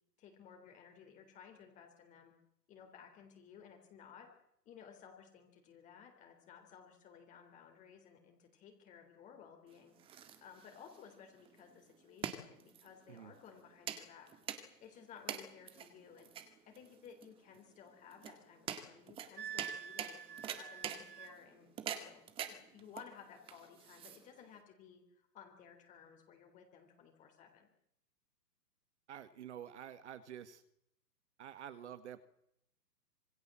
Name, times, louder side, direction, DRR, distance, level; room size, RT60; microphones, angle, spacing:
voice 1, 0.2-2.3 2.7-4.3 4.7-9.9 10.4-14.3 14.8-20.2 20.5-27.7, left 7 dB, 15° left, 4 dB, 3.6 m, -57 dB
sound 1, 9.7-24.6, right 8 dB, 10° right, 1.9 m, -46 dB
Wind instrument woodwind instrument, 19.4-21.4, right 8 dB, 75° right, 1.9 m, -47 dB
voice 2, 29.1-30.6 31.4-32.2, right 10 dB, 45° right, 12 dB, 1.8 m, -49 dB
27.0 x 22.5 x 7.6 m, 0.76 s
hypercardioid pair, 160°, 49 cm